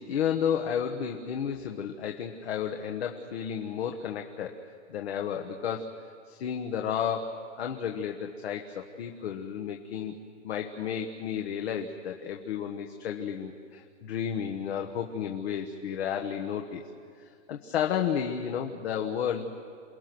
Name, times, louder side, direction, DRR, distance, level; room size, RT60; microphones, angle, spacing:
voice 1, 0.0-4.6 4.9-5.9 6.3-10.1 10.4-16.8 17.5-19.5, left 8 dB, 55° left, 3 dB, 1.5 m, -32 dB
28.5 x 20.0 x 6.2 m, 2.3 s
hypercardioid pair, 165°, 38 cm